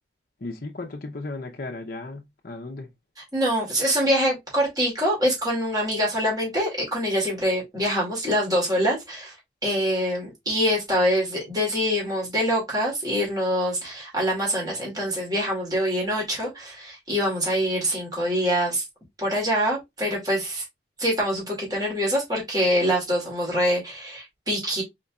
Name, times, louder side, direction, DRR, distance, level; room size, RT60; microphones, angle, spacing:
voice 1, 0.4-2.9, left 2 dB, 50° left, 0.6 m, -35 dB
voice 2, 3.2-9.3 9.6-18.8 19.2-20.6 21.0-24.8, equal, 20° right, 2.3 m, -25 dB
4.4 x 4.2 x 2.4 m
head